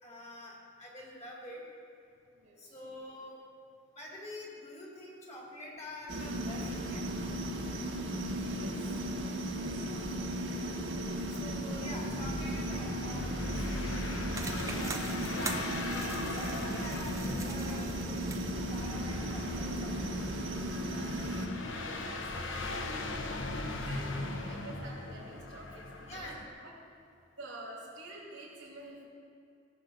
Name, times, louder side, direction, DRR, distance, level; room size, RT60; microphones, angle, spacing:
voice 1, 0.0-1.6 2.6-3.4 4.0-7.0 9.9-10.1 10.6-10.8 11.4-15.7 15.9-18.3 18.7-20.2 26.1-26.4, left 1 dB, 30° left, -2 dB, 2.5 m, -47 dB
voice 2, 2.3-2.8 8.5-9.0 20.8-26.3 26.6-26.8 27.4-29.0, right 2 dB, 90° right, -6 dB, 2.6 m, -49 dB
sound 1, 6.1-21.5, right 1 dB, 70° right, 1.4 m, -36 dB
sound 2, 11.3-26.5, left 2 dB, 80° left, 1.1 m, -39 dB
sound 3, 14.3-18.9, right 4 dB, 15° right, 0.6 m, -44 dB
16.5 x 6.4 x 6.7 m, 2.5 s
head